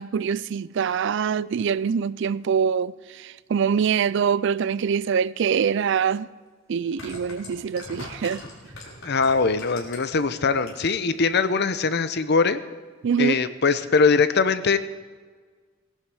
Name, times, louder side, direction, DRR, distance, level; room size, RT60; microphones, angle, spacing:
voice 1, 0.0-6.3 6.7-8.4 13.0-13.4, right 7 dB, 65° right, 0.4 m, -24 dB
sound 1, 5.8-5.9 6.8-10.2 10.6-11.1 11.4-11.5, left 2 dB, 85° left, 4.4 m, -40 dB
voice 2, 9.0-12.6 13.2-14.8, left 4 dB, 55° left, 0.8 m, -21 dB
18.5 x 11.5 x 4.9 m
head